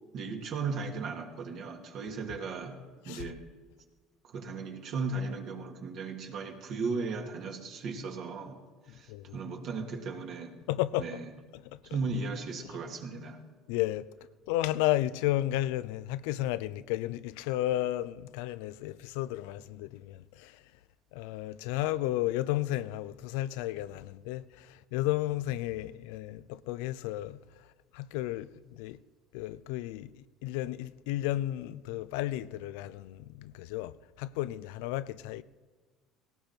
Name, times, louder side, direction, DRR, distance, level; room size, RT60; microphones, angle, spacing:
voice 1, 0.1-2.8 3.0-3.5 4.2-8.6 8.9-10.6 11.0-11.3 11.9-13.4, right 4 dB, 55° right, 2.5 m, -36 dB
voice 2, 10.7-11.2 11.5-11.8 13.7-14.1 14.5-20.6 21.1-27.4 27.9-29.0 29.3-35.4, left 15 dB, 85° left, 0.5 m, -33 dB
18.0 x 17.0 x 4.5 m
supercardioid pair, 115°, 0 cm